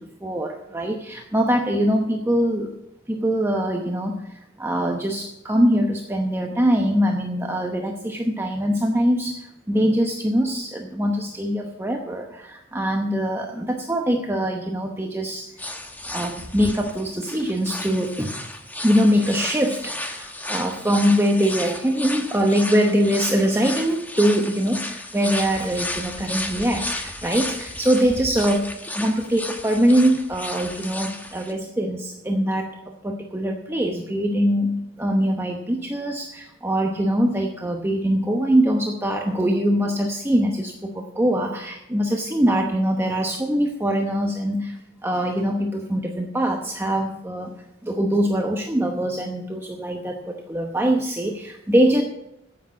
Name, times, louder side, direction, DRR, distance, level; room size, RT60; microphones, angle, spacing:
voice 1, 0.0-2.7 3.1-4.2 4.6-15.5 16.1-18.3 18.8-28.7 28.9-32.7 33.0-47.5 47.8-52.0, equal, 10° right, 2 dB, 0.9 m, -23 dB
sound 1, 15.6-31.5, left 1 dB, 10° left, 1.1 m, -33 dB
10.0 x 8.6 x 7.4 m, 0.84 s
head